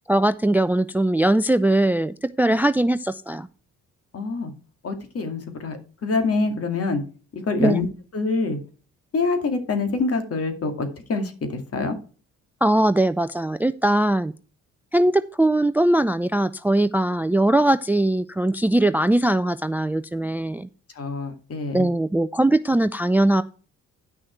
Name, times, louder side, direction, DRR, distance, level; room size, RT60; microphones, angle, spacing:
voice 1, 0.1-3.5 7.6-7.8 12.6-14.3 14.9-20.7 21.7-23.4, right 1 dB, 5° right, 15 dB, 0.4 m, -20 dB
voice 2, 4.1-4.5 4.8-7.0 7.5-7.9 8.1-8.6 9.1-12.0 21.0-21.9, left 3 dB, 50° left, 7 dB, 2.4 m, -25 dB
10.5 x 6.3 x 4.5 m, 0.38 s
cardioid pair, 90°, 30 cm